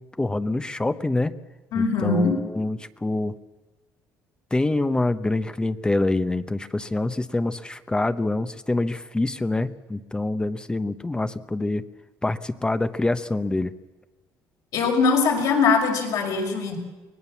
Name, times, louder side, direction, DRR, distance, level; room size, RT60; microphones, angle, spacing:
voice 1, 0.0-1.3 1.7-3.3 4.5-11.8 12.2-13.7, left 2 dB, 15° left, 12 dB, 0.9 m, -26 dB
voice 2, 1.7-2.4 14.7-16.8, left 4 dB, 70° left, 1 dB, 5.6 m, -21 dB
24.0 x 18.5 x 7.2 m, 1.3 s
cardioid pair, 105°, 7 cm